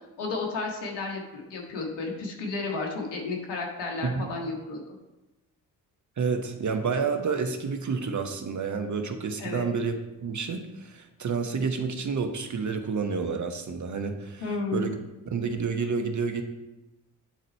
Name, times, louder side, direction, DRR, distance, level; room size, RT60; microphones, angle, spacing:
voice 1, 0.2-4.9 9.4-9.7 14.4-14.9, left 3 dB, 75° left, 0 dB, 1.7 m, -32 dB
voice 2, 4.0-4.3 6.2-14.9 15.3-16.4, right 5 dB, 45° right, 6 dB, 1.2 m, -29 dB
9.9 x 4.0 x 4.4 m, 1.0 s
hypercardioid pair, 45°, 41 cm